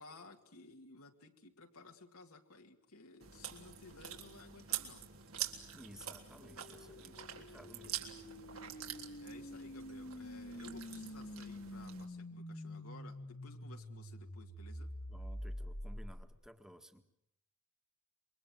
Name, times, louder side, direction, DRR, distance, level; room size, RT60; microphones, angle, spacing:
voice 1, 0.0-5.1 9.0-14.9, left 3 dB, 75° left, 3 dB, 2.3 m, -56 dB
Chewing mastication, 3.2-12.0, right 10 dB, 70° right, 3.5 m, -46 dB
voice 2, 5.7-8.1 15.1-17.0, equal, ahead, 7 dB, 1.8 m, -56 dB
sound 1, 6.4-16.5, equal, 45° left, 2.0 m, -47 dB
27.5 x 24.0 x 7.8 m, 0.75 s
head